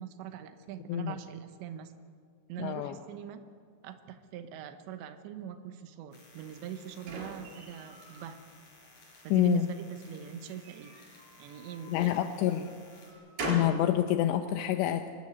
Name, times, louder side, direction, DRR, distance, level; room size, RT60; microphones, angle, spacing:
voice 1, 0.0-1.9 2.5-3.4 3.8-8.4 9.2-10.9 11.4-12.1, right 10 dB, 80° right, 8 dB, 3.3 m, -42 dB
voice 2, 2.6-2.9 9.3-9.7 11.9-12.7 13.4-15.1, left 12 dB, 80° left, 7 dB, 2.9 m, -27 dB
sound 1, 6.1-13.1, left 2 dB, 45° left, 6.9 m, -58 dB
sound 2, 6.4-8.3 8.8-9.5 10.5-12.0 12.5-13.9, right 2 dB, 60° right, 5.9 m, -41 dB
25.0 x 13.0 x 9.8 m, 2.2 s
omnidirectional pair, 5.3 m